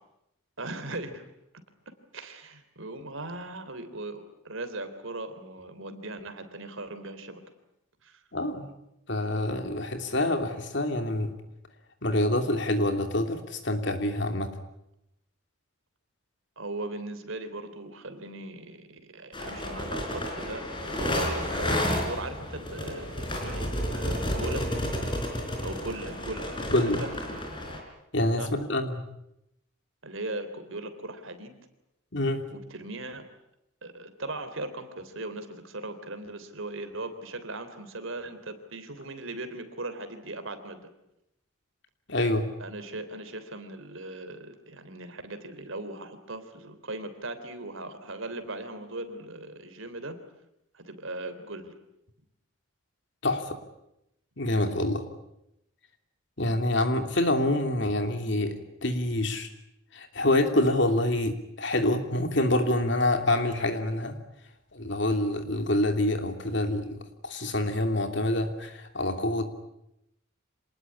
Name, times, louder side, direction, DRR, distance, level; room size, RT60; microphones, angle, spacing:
voice 1, 0.6-1.3 2.1-7.4 8.0-8.2 16.6-20.6 20.9-24.7 25.6-26.5 26.8-27.1 28.4-28.6 30.0-31.6 32.5-33.2 33.8-40.8 42.6-50.2 50.7-51.7 54.5-54.8, right 2 dB, 70° right, 9 dB, 3.4 m, -39 dB
voice 2, 8.3-8.7 9.1-11.3 12.0-14.5 26.7-27.0 28.1-29.0 32.1-32.5 42.1-42.5 53.2-53.6 54.4-55.0 56.4-59.5 59.9-64.2 64.7-69.5, left 1 dB, 55° left, 6 dB, 2.9 m, -26 dB
sound 1, 19.3-27.8, left 1 dB, 25° left, 4.4 m, -31 dB
27.0 x 20.0 x 9.8 m, 0.84 s
head